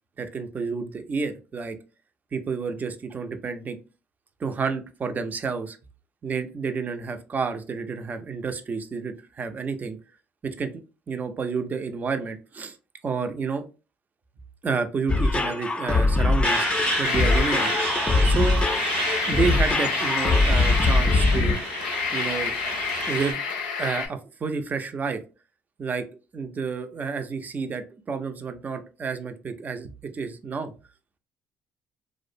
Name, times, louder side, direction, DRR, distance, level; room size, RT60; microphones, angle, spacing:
voice 1, 0.2-1.8 2.3-3.8 4.4-5.8 6.2-10.0 10.6-10.8 11.1-12.7 13.0-13.6 14.6-16.7 17.0-17.7 18.2-18.6 19.3-21.6 22.1-22.5 23.1-23.4 23.8-25.2 25.8-26.0 26.3-30.7, right 5 dB, 35° right, 7 dB, 0.5 m, -30 dB
sound 1, 15.1-21.5, left 3 dB, 20° left, 0.4 m, -22 dB
Truck, 16.4-23.3, right 2 dB, 90° right, 0.9 m, -30 dB
sound 2, 17.0-18.0 18.5-24.1, left 5 dB, 90° left, 0.4 m, -29 dB
2.4 x 2.1 x 2.5 m, 0.32 s
hypercardioid pair, 60°, 5 cm